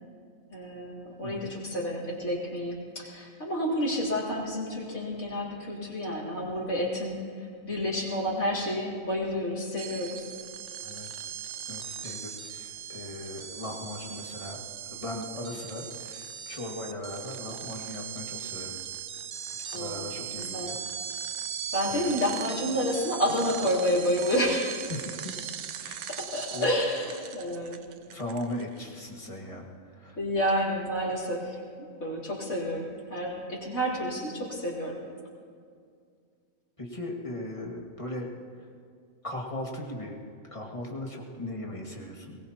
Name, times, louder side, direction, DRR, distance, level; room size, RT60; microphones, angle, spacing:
voice 1, 0.5-10.3 19.7-20.1 20.4-20.7 21.7-24.8 26.2-27.8 30.2-35.0, equal, 80° left, -6 dB, 3.8 m, -30 dB
sound 1, 9.8-28.9, right 8 dB, 65° right, 1.0 m, -39 dB
voice 2, 11.7-14.6 14.9-18.8 19.7-20.8 21.8-22.1 24.9-25.4 25.7-26.1 26.5-26.8 28.1-30.2 36.8-38.3 38.6-38.7 39.2-40.2 40.5-42.4, left 1 dB, 25° left, -1 dB, 2.0 m, -38 dB
22.5 x 19.5 x 2.9 m, 2.2 s
omnidirectional pair, 1.4 m